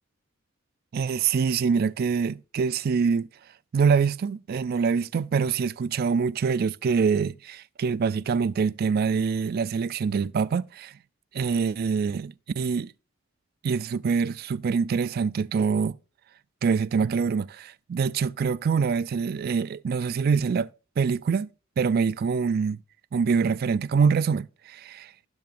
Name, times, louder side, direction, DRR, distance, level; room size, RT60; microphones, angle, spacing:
voice 1, 0.9-3.3 3.7-11.0 11.3-12.9 13.6-16.0 16.6-20.7 21.0-21.5 21.8-22.8 23.1-25.1, right 5 dB, 45° right, 0.3 m, -25 dB
12.0 x 7.7 x 2.5 m
head